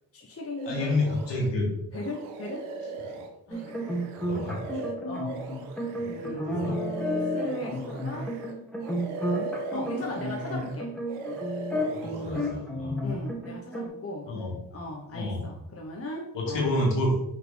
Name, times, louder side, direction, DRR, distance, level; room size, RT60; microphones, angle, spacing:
voice 1, 0.1-1.2 1.9-2.7 3.5-3.9 5.0-5.5 6.0-6.6 7.0-8.3 9.7-11.0 13.0-14.3 14.7-16.7, left 2 dB, 30° left, 0 dB, 1.2 m, -38 dB
sound 1, 0.6-1.5 1.9-8.5 8.8-10.8 11.1-12.5, right 3 dB, 75° right, 0.8 m, -39 dB
voice 2, 0.7-1.7 4.3-4.8 6.2-6.8 11.9-13.0 14.2-14.5 15.1-15.5 16.3-17.1, left 1 dB, 60° left, -2 dB, 2.3 m, -29 dB
sound 2, 3.5-13.9, equal, ahead, 2.3 m, -32 dB
5.8 x 4.7 x 3.4 m, 0.79 s
hypercardioid pair, 45°, 49 cm